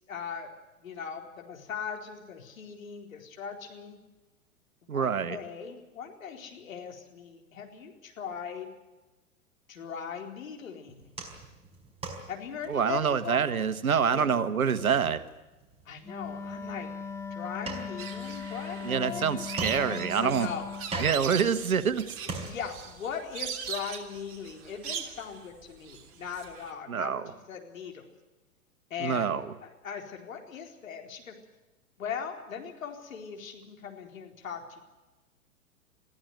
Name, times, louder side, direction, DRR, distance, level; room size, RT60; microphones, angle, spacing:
voice 1, 0.1-0.5 0.8-4.0 4.8-8.7 9.7-11.1 12.3-13.5 14.1-14.2 15.9-16.9 17.3-20.7 20.9-21.3 22.2-28.1 28.9-31.3 32.0-34.8, left 7 dB, 65° left, 3 dB, 4.2 m, -39 dB
voice 2, 4.9-5.4 12.7-15.2 18.8-20.5 21.0-22.1 26.9-27.2 29.0-29.4, right 7 dB, 75° right, 12 dB, 1.6 m, -26 dB
sound 1, 10.9-23.0, right 3 dB, 15° right, 4.9 m, -43 dB
Wind instrument woodwind instrument, 16.0-20.9, left 6 dB, 5° left, 0.7 m, -39 dB
sound 2, 18.0-26.7, right 7 dB, 30° right, 3.4 m, -40 dB
22.5 x 15.0 x 9.5 m, 1.1 s
figure-of-eight pair, 105°, 43 cm